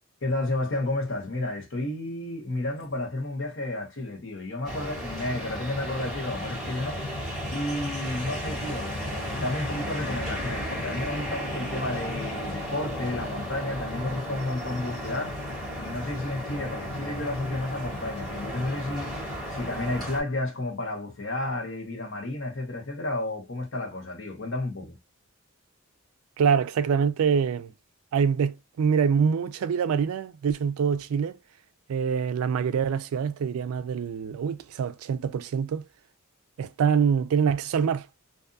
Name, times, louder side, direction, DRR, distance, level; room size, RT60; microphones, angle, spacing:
voice 1, 0.2-7.0 7.5-15.3 15.8-25.0, left 2 dB, 65° left, 1.0 m, -32 dB
sound 1, 4.6-20.2, equal, ahead, 1.2 m, -34 dB
voice 2, 26.4-27.7 28.1-31.3 31.9-35.8 36.6-38.1, right 6 dB, 85° right, 0.3 m, -25 dB
2.5 x 2.4 x 2.4 m
head